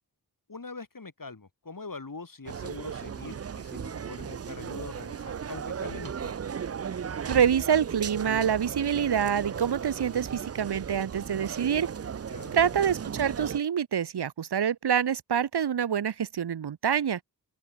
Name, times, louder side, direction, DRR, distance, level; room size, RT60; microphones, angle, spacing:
voice 1, 0.5-6.4 12.3-12.8, left 3 dB, 55° left, 4.7 m, -43 dB
sound 1, 2.5-13.6, right 7 dB, 40° right, 0.4 m, -36 dB
voice 2, 7.3-11.9 12.5-17.2, right 8 dB, 75° right, 0.8 m, -26 dB
open air
wide cardioid pair, 65°, 40 cm